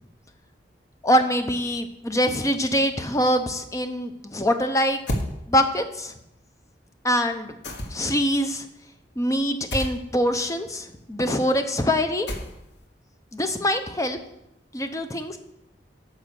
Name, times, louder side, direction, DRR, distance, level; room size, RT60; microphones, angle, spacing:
voice 1, 1.0-5.0 5.5-6.1 7.0-7.5 7.9-8.7 9.2-12.3 13.3-14.2 14.7-15.4, equal, 20° left, 8 dB, 0.6 m, -24 dB
sound 1, 5.1-5.3 7.6-8.2 9.7-10.0 12.3-12.8, equal, 75° left, 1.3 m, -29 dB
9.0 x 5.5 x 6.3 m, 0.85 s
head